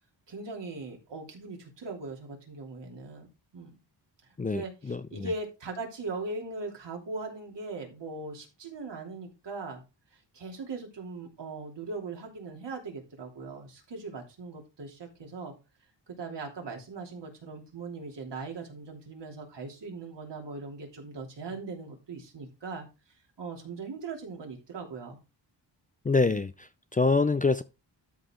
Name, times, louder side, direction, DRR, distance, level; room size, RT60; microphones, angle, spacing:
voice 1, 0.3-3.3 3.5-3.7 4.2-9.8 10.3-15.5 16.1-22.9 23.4-25.2, right 3 dB, 70° right, 3.2 m, -39 dB
voice 2, 4.4-5.3 26.0-27.6, left 3 dB, 20° left, 0.4 m, -26 dB
12.5 x 4.9 x 3.7 m
cardioid pair, 90°, 44 cm